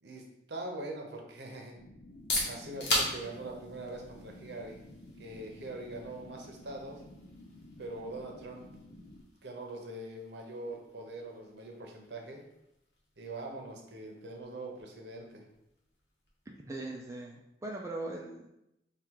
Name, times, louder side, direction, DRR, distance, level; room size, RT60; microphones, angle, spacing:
voice 1, 0.0-1.8 2.4-4.8 5.2-7.0 7.8-8.7 9.4-12.4 13.2-15.4, right 2 dB, 70° right, 1 dB, 0.8 m, -42 dB
sound 1, 1.8-9.2, left 1 dB, 85° left, 0.5 m, -52 dB
sound 2, 2.0-17.6, left 1 dB, 65° left, 1.1 m, -41 dB
voice 2, 16.7-18.5, right 2 dB, 15° right, -1 dB, 0.4 m, -40 dB
3.6 x 2.4 x 4.5 m, 0.86 s
head